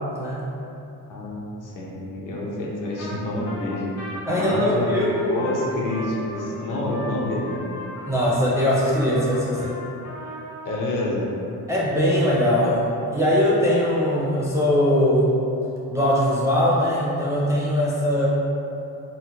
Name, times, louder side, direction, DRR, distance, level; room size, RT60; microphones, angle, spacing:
voice 1, 0.1-0.5 4.3-5.2 8.1-9.7 11.7-15.3 15.9-18.3, equal, 10° right, -7 dB, 0.4 m, -21 dB
voice 2, 1.1-3.8 4.3-7.7 10.6-11.3, left 1 dB, 60° left, -4 dB, 0.7 m, -28 dB
Trumpet, 3.0-3.2 3.4-10.8, equal, 80° left, 1.2 m, -37 dB
4.2 x 2.0 x 2.9 m, 2.8 s
cardioid pair, 120°, 36 cm